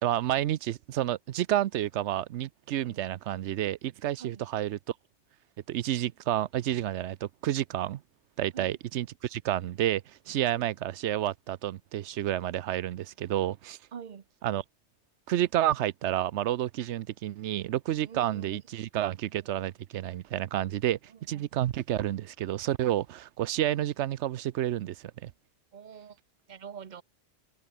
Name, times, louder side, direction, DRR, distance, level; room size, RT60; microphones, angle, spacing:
voice 1, 0.0-4.8 5.7-8.0 8.4-13.8 14.4-14.6 15.3-21.0 21.3-25.3, right 12 dB, 90° right, 0.9 m, -30 dB
voice 2, 13.9-14.3 18.0-18.6 21.1-21.5 25.7-26.2 26.5-27.0, right 7 dB, 45° right, 0.9 m, -45 dB
omnidirectional pair, 1.1 m